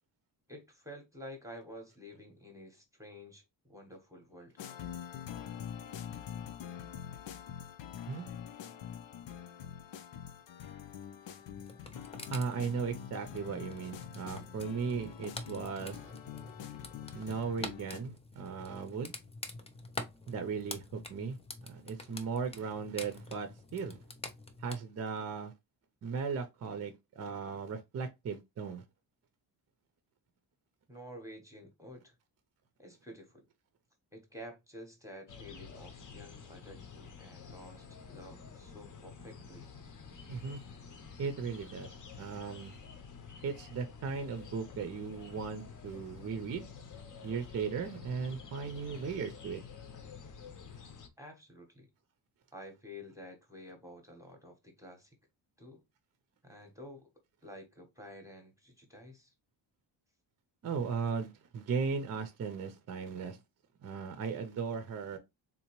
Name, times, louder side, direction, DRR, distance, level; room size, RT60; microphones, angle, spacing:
voice 1, 0.5-3.4 3.7-4.6 30.9-32.2 32.8-33.5 34.1-39.7 51.2-51.9 52.5-55.1 55.6-55.8 56.4-57.1 57.4-59.3, equal, 5° right, 0.8 m, -50 dB
sound 1, 4.6-18.0, left 9 dB, 90° left, 0.7 m, -45 dB
sound 2, 11.6-24.8, left 2 dB, 15° left, 0.3 m, -47 dB
voice 2, 12.3-16.0 17.1-19.1 20.3-24.0 24.6-25.5 26.0-28.8 40.3-40.6 41.2-42.8 43.4-46.7 47.2-49.6 60.6-63.4 63.8-65.2, right 5 dB, 35° right, 0.5 m, -37 dB
sound 3, 35.3-51.1, left 6 dB, 45° left, 0.7 m, -50 dB
3.7 x 2.8 x 2.9 m
wide cardioid pair, 155°, 44 cm